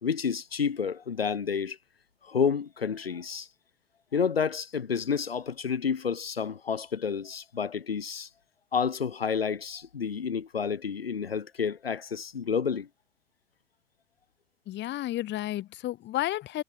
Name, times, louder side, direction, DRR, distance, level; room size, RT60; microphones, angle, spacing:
voice 1, 0.0-1.8 2.2-3.5 4.1-8.3 8.7-12.9, left 6 dB, 85° left, 0.9 m, -30 dB
voice 2, 14.7-16.6, left 14 dB, 40° left, 0.9 m, -32 dB
figure-of-eight pair, 65°, 29 cm